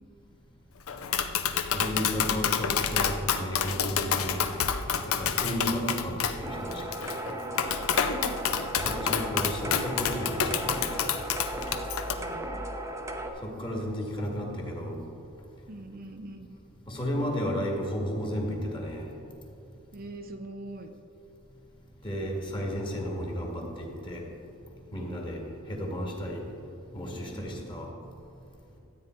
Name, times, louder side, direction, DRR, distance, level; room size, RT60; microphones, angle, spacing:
Tap, 0.9-12.1, left 7 dB, 80° left, 0.6 m, -29 dB
voice 1, 1.7-4.6 5.0-7.1 8.8-11.1 13.4-15.0 16.9-19.1 22.0-24.2 24.9-25.4 25.7-26.4 26.9-27.9, equal, 25° left, -1 dB, 2.0 m, -33 dB
voice 2, 4.0-4.3 5.5-6.0 7.9-8.5 12.2-12.7 15.7-16.5 19.9-20.9 22.2-22.8 24.9-25.2 27.3-27.6, right 1 dB, 45° right, 4 dB, 0.7 m, -42 dB
sound 1, 6.4-13.3, right 1 dB, 15° right, 0.8 m, -36 dB
13.0 x 9.0 x 4.6 m, 2.9 s
head